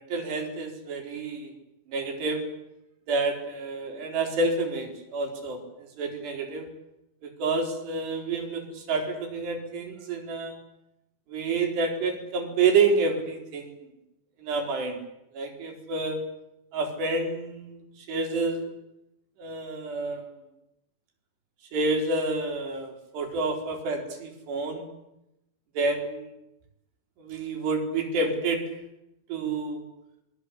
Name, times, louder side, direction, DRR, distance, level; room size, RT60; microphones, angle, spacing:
voice 1, 0.0-1.5 1.9-2.4 3.1-6.7 7.2-10.6 11.3-13.9 14.4-15.0 15.3-16.2 16.7-18.7 19.4-20.3 21.7-24.9 25.8-26.3 27.2-28.6 29.3-29.8, right 3 dB, 70° right, 3 dB, 6.1 m, -29 dB
27.0 x 21.5 x 8.4 m, 0.87 s
omnidirectional pair, 5.1 m